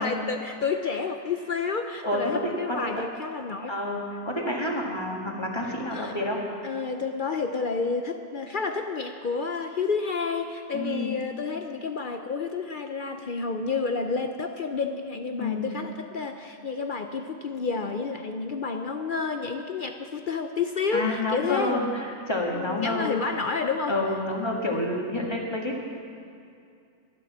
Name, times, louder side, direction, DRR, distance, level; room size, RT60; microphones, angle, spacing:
voice 1, 0.0-3.7 5.9-6.2 6.6-21.8 22.5-23.9, left 4 dB, 65° left, 6 dB, 0.5 m, -30 dB
voice 2, 2.0-3.1 3.7-6.4 10.7-11.1 15.4-15.7 20.9-23.2 23.9-25.8, left 1 dB, 15° left, -1 dB, 1.8 m, -29 dB
12.0 x 11.0 x 7.3 m, 2.5 s
omnidirectional pair, 1.6 m